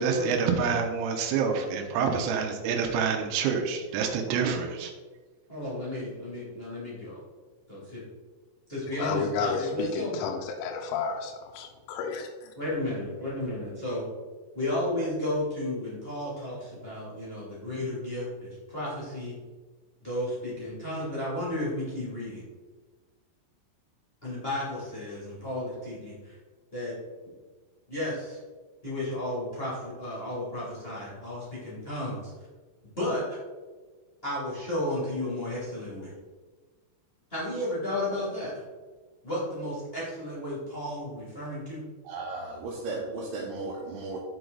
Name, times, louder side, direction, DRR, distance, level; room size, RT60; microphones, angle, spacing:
voice 1, 0.0-4.9, right 6 dB, 90° right, 3 dB, 3.6 m, -27 dB
voice 2, 5.5-7.2 7.7-8.0 8.7-10.3 12.6-14.0 14.5-19.3 20.0-22.4 24.2-26.3 26.7-26.9 27.9-28.4 28.8-32.3 33.0-33.4 34.2-36.1 37.3-38.6 39.2-41.8, left 1 dB, 30° left, -8 dB, 1.0 m, -33 dB
voice 3, 8.9-12.5, left 5 dB, 90° left, 1 dB, 3.3 m, -32 dB
voice 4, 42.0-44.2, right 3 dB, 75° right, -4 dB, 3.2 m, -35 dB
11.5 x 4.7 x 4.0 m, 1.3 s
omnidirectional pair, 6.0 m